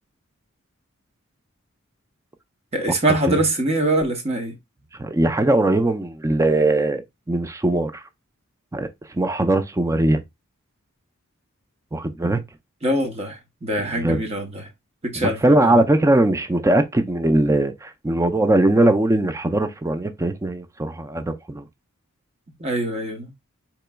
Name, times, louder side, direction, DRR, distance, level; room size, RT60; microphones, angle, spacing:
voice 1, 2.7-4.6 12.8-14.7 15.0-15.8 22.6-23.3, right 1 dB, 30° right, 0.8 m, -23 dB
voice 2, 5.0-7.0 7.3-8.0 8.7-8.9 9.1-10.2 11.9-12.4 14.0-14.2 15.2-21.6, right 1 dB, 15° right, 0.4 m, -20 dB
4.4 x 2.9 x 2.2 m
head